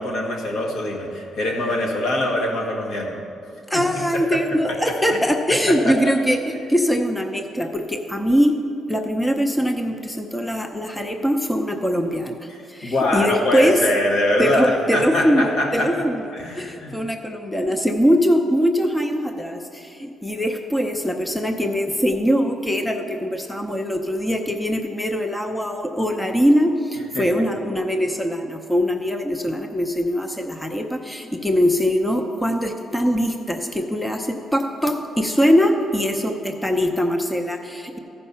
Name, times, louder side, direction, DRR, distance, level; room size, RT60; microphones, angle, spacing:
voice 1, 0.0-3.2 3.7-4.4 4.7-5.2 5.5-6.1 12.5-16.1 16.3-17.0 27.2-27.5, left 1 dB, 75° left, 0 dB, 1.6 m, -24 dB
voice 2, 3.7-6.4 6.7-8.5 8.9-12.4 12.7-13.8 14.4-16.2 16.5-38.0, equal, 5° left, 5 dB, 0.7 m, -22 dB
13.5 x 5.5 x 5.6 m, 2.8 s
cardioid pair, 90°, 0 cm